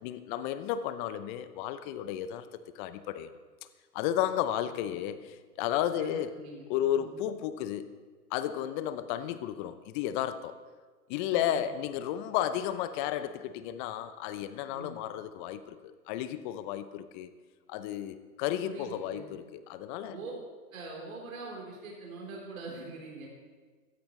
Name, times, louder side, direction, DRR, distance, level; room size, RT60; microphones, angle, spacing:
voice 1, 0.0-2.5 2.7-3.3 3.9-6.3 6.7-7.9 8.3-10.6 11.1-17.3 17.7-20.2, left 11 dB, 35° left, 12 dB, 0.8 m, -33 dB
voice 2, 5.9-7.2 11.3-11.6 14.7-15.0 18.6-19.3 20.1-20.3 20.7-23.3, right 3 dB, 60° right, -3 dB, 4.1 m, -43 dB
16.0 x 14.0 x 3.3 m, 1.4 s
hypercardioid pair, 110°, 46 cm